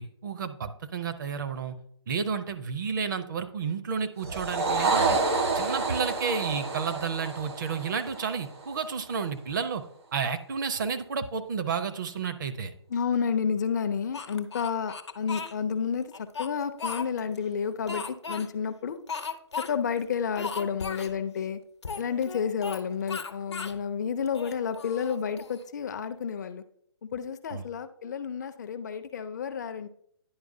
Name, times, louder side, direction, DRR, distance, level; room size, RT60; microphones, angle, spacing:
voice 1, 0.0-1.8 2.1-5.2 5.5-9.8 10.1-12.7 27.5-27.7, right 6 dB, 45° right, 9 dB, 0.6 m, -31 dB
sound 1, 4.2-8.8, right 3 dB, 65° right, 1.3 m, -28 dB
voice 2, 12.9-19.0 19.6-21.6 22.0-26.6 27.0-29.9, left 6 dB, 40° left, 10 dB, 0.4 m, -30 dB
Speech, 14.1-15.5 16.1-17.4 17.9-18.5 19.1-19.7 20.0-20.1 20.3-21.1 21.8-22.8 23.1-23.8 24.3-25.6, left 5 dB, 80° left, 0.8 m, -36 dB
10.5 x 4.6 x 2.6 m, 0.67 s
figure-of-eight pair, 145°, 14 cm